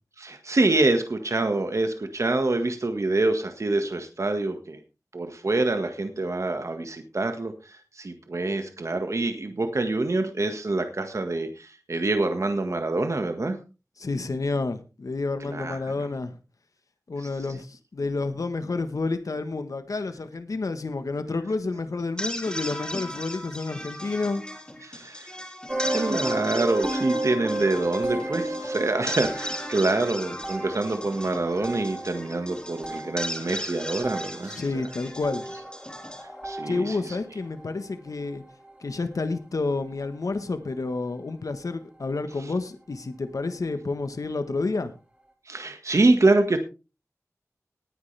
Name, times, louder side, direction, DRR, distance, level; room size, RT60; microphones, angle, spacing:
voice 1, 0.2-4.8 5.1-13.6 15.4-15.8 17.2-17.3 24.8-25.3 25.9-34.6 36.4-37.0 45.5-46.6, right 2 dB, 60° right, 7 dB, 1.6 m, -26 dB
voice 2, 14.0-16.4 17.1-24.4 34.4-35.5 36.7-38.4 38.8-44.9, left 3 dB, 75° left, 9 dB, 1.3 m, -30 dB
sound 1, 22.0-37.2, equal, 15° left, 3.9 m, -37 dB
sound 2, 25.7-37.1 37.4-37.8 38.5-38.7 39.0-39.1 39.7-39.8, right 1 dB, 20° right, 4.2 m, -33 dB
19.0 x 10.0 x 3.4 m, 0.31 s
wide cardioid pair, 65°, 6 cm